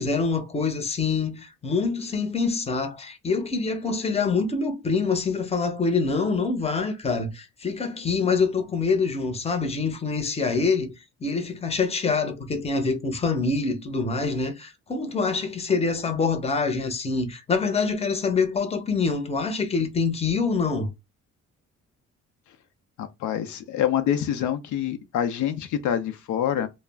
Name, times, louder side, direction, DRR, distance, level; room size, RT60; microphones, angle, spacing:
voice 1, 0.0-11.0 11.2-20.9, left 4 dB, 20° left, 0.6 m, -25 dB
voice 2, 23.0-26.7, left 10 dB, 80° left, 0.5 m, -26 dB
2.3 x 2.0 x 3.3 m
cardioid pair, 90°, 30 cm